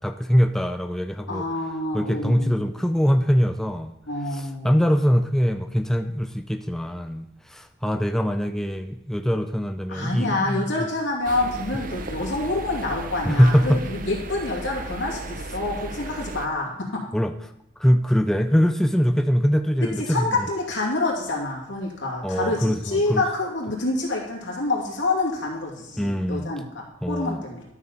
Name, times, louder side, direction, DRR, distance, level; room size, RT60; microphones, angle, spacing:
voice 1, 0.0-1.4 1.9-3.9 4.3-10.9 13.2-13.8 17.1-17.3 17.8-20.2 22.2-23.2 26.0-26.5 27.0-27.4, equal, ahead, 7 dB, 0.3 m, -22 dB
voice 2, 1.3-2.6 4.1-4.7 9.9-17.0 19.8-27.6, left 2 dB, 85° left, -2 dB, 2.6 m, -27 dB
sound 1, 11.2-16.5, right 2 dB, 45° right, 0.6 m, -35 dB
12.0 x 6.6 x 4.1 m, 0.81 s
head